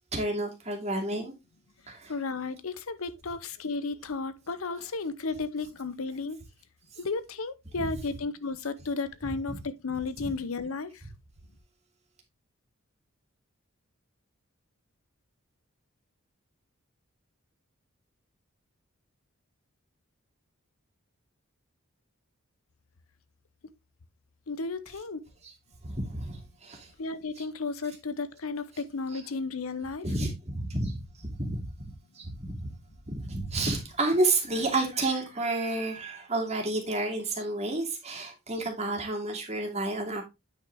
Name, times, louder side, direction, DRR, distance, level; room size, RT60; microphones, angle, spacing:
voice 1, 0.1-1.3 1.9-2.2 7.8-7.9 9.5-9.6 10.2-10.3 25.4-25.5 25.8-26.9 27.4-27.5 29.1-29.2 30.0-31.7 32.1-32.7 33.1-40.2, right 2 dB, 30° right, 2.6 m, -30 dB
voice 2, 2.1-6.4 7.0-11.0 24.5-25.2 27.0-30.1, left 4 dB, 80° left, 0.8 m, -33 dB
9.2 x 5.8 x 3.4 m
head